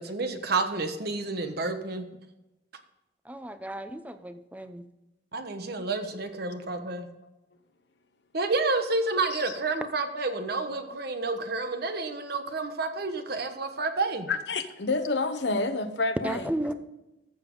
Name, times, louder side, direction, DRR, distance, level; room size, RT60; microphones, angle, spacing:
voice 1, 0.0-2.0 5.3-7.1 8.3-14.3, right 3 dB, 60° right, 7 dB, 1.2 m, -30 dB
voice 2, 3.3-4.8 16.2-16.7, right 1 dB, 10° right, 10 dB, 0.7 m, -34 dB
voice 3, 14.3-16.5, left 3 dB, 70° left, 9 dB, 1.0 m, -28 dB
14.0 x 7.2 x 3.9 m, 0.97 s
head